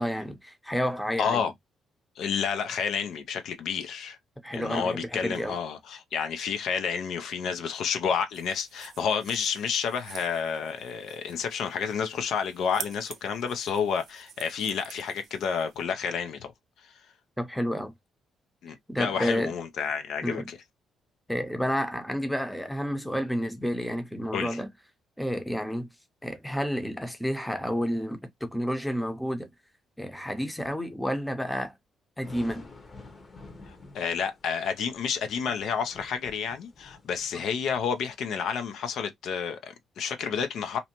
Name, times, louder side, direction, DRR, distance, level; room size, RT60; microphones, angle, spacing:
voice 1, 0.0-1.4 4.4-5.5 17.4-17.9 18.9-19.5 20.2-20.4 21.3-24.7 25.2-25.9 26.2-29.5 30.0-31.7 32.2-32.6, equal, 5° left, 0.7 m, -30 dB
voice 2, 1.2-1.5 2.2-4.2 4.5-16.5 16.8-16.9 18.6-20.6 24.3-24.6 33.7-40.8, left 6 dB, 75° left, 0.5 m, -30 dB
sound 1, 8.3-15.8, right 8 dB, 65° right, 0.5 m, -47 dB
sound 2, 32.2-38.1, left 3 dB, 35° left, 0.9 m, -50 dB
2.7 x 2.1 x 2.8 m
cardioid pair, 90°, 0 cm